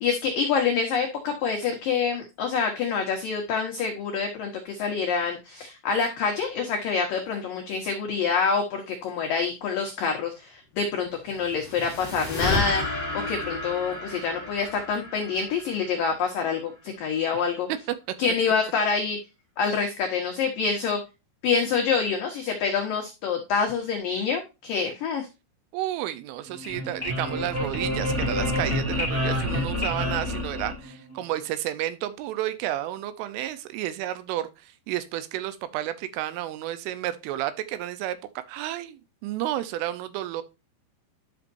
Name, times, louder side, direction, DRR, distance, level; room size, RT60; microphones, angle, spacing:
voice 1, 0.0-12.8 13.1-17.7 18.2-19.2 19.6-21.0 21.4-25.3, left 5 dB, 80° left, 1.9 m, -26 dB
sound 1, 11.1-16.5, left 3 dB, 15° left, 1.9 m, -32 dB
voice 2, 25.7-40.4, right 13 dB, 80° right, 3.2 m, -31 dB
sound 2, 26.5-31.2, left 1 dB, 5° right, 0.9 m, -28 dB
11.5 x 5.7 x 2.6 m
omnidirectional pair, 5.9 m